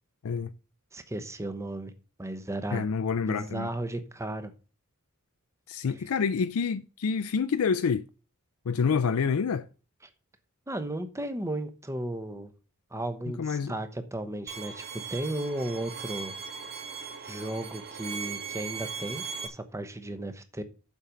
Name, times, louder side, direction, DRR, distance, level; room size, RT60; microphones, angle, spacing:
voice 1, 0.9-1.9 2.2-2.9 3.2-4.5 10.7-12.5 12.9-14.8 15.1-16.3 17.3-20.6, right 1 dB, 15° right, 0.9 m, -35 dB
voice 2, 2.7-3.7 5.7-8.0 8.7-9.7 13.4-13.7, left 6 dB, 70° left, 0.4 m, -27 dB
Bowed string instrument, 14.5-19.5, right 6 dB, 45° right, 1.1 m, -38 dB
7.4 x 5.2 x 6.9 m
head